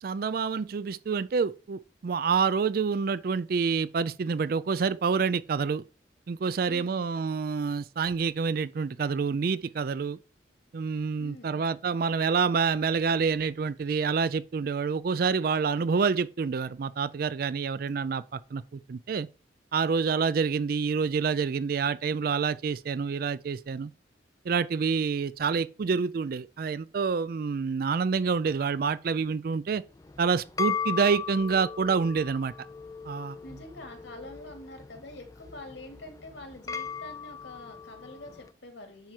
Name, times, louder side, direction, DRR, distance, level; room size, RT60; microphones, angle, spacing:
voice 1, 0.0-5.8 6.3-10.2 10.7-19.3 19.7-23.9 24.5-29.8 30.2-32.5 33.1-33.4, right 5 dB, 50° right, 0.4 m, -27 dB
voice 2, 6.6-7.1 11.2-11.6 33.4-39.1, left 1 dB, 85° left, 2.4 m, -46 dB
sound 1, 30.0-38.5, left 6 dB, 20° left, 0.4 m, -37 dB
10.5 x 4.5 x 4.4 m
head